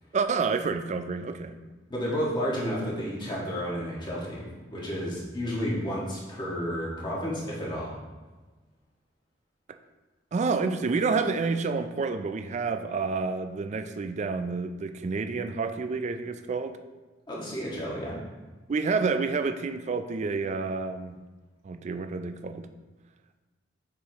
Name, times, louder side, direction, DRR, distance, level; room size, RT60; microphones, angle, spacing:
voice 1, 0.1-1.6 10.3-16.8 18.7-21.2 21.6-22.7, right 4 dB, 40° right, 8 dB, 0.3 m, -29 dB
voice 2, 1.9-7.9 17.3-18.1, equal, 25° left, -5 dB, 1.5 m, -31 dB
6.8 x 4.8 x 2.9 m, 1.3 s
head